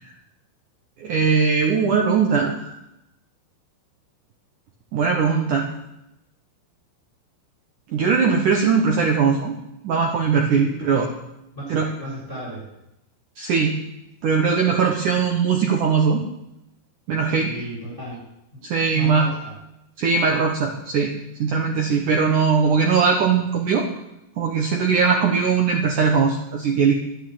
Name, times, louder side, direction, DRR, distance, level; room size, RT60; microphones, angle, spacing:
voice 1, 1.0-2.8 4.9-5.7 7.9-9.5 9.8-11.1 11.7-11.9 13.4-13.8 14.2-16.2 17.1-17.5 18.6-19.3 20.0-21.1 21.4-23.9 24.4-26.9, right 5 dB, 85° right, 1 dB, 1.8 m, -20 dB
voice 2, 10.5-10.9 11.5-12.7 17.4-18.2 18.5-18.6 18.9-19.5, right 1 dB, 15° left, -6 dB, 7.6 m, -34 dB
11.5 x 10.0 x 9.9 m, 0.85 s
omnidirectional pair, 5.9 m